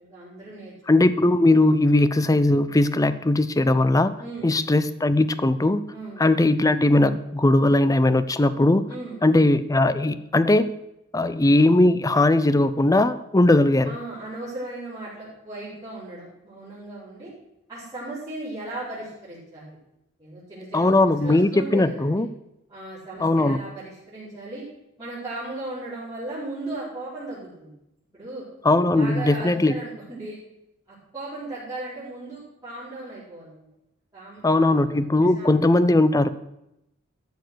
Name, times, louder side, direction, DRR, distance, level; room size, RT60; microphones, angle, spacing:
voice 1, 0.0-0.7 4.2-4.5 5.9-6.2 8.9-9.2 13.8-17.3 17.7-19.8 20.2-22.2 22.7-24.7 25.0-27.7 28.1-28.4 28.9-30.4 30.9-33.6 34.1-35.5, right 2 dB, 20° right, -13 dB, 4.6 m, -37 dB
voice 2, 0.9-4.1 4.4-5.8 6.2-8.9 9.2-10.7 11.1-13.9 20.7-22.3 23.2-23.6 28.6-29.8 34.4-36.3, left 2 dB, 15° left, 14 dB, 0.5 m, -19 dB
13.0 x 7.0 x 6.3 m, 0.86 s
head